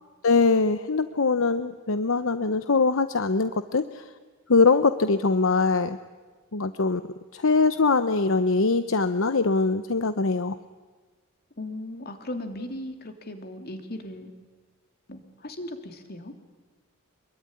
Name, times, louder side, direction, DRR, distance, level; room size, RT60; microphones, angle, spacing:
voice 1, 0.2-4.0 4.5-6.0 6.5-7.0 7.3-10.6, left 4 dB, 65° left, 11 dB, 0.9 m, -22 dB
voice 2, 11.6-14.3 15.1-16.3, left 1 dB, 45° left, 6 dB, 3.0 m, -37 dB
26.5 x 22.5 x 9.8 m, 1.4 s
head